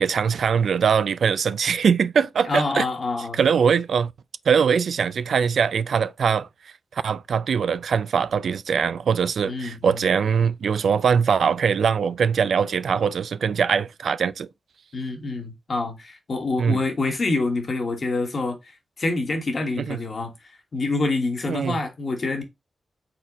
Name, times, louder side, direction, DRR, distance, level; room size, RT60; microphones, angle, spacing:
voice 1, 0.0-2.8 3.3-4.1 4.5-6.5 6.9-14.5 16.6-16.8 19.8-20.0 21.5-21.8, right 6 dB, 75° right, 0.3 m, -22 dB
voice 2, 2.5-3.4 9.4-10.0 14.9-20.3 20.7-22.4, left 3 dB, 45° left, 1.4 m, -26 dB
4.3 x 4.0 x 2.9 m
wide cardioid pair, 115°, 0 cm